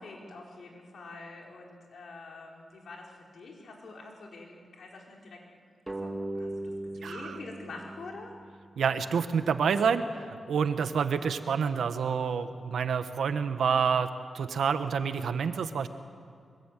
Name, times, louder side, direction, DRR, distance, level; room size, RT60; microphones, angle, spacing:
voice 1, 0.0-5.4 5.9-8.3, left 3 dB, 75° left, -1 dB, 4.7 m, -46 dB
sound 1, 5.9-9.1, right 1 dB, 15° right, 2.0 m, -39 dB
voice 2, 7.0-7.4 8.8-14.1 14.3-15.9, right 6 dB, 85° right, 9 dB, 1.4 m, -28 dB
24.0 x 22.5 x 9.3 m, 2.2 s
cardioid pair, 85°, 0 cm